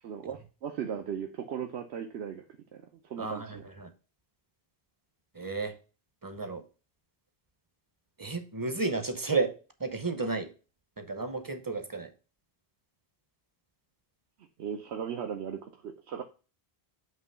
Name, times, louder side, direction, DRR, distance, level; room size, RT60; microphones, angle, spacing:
voice 1, 0.0-2.4 2.7-3.6 14.6-16.2, right 8 dB, 80° right, 5 dB, 1.0 m, -37 dB
voice 2, 3.2-3.9 5.3-5.7 6.2-6.6 8.2-9.5 9.8-10.5 11.0-12.1, right 3 dB, 25° right, 8 dB, 0.6 m, -32 dB
7.9 x 3.0 x 5.4 m, 0.35 s
omnidirectional pair, 1.1 m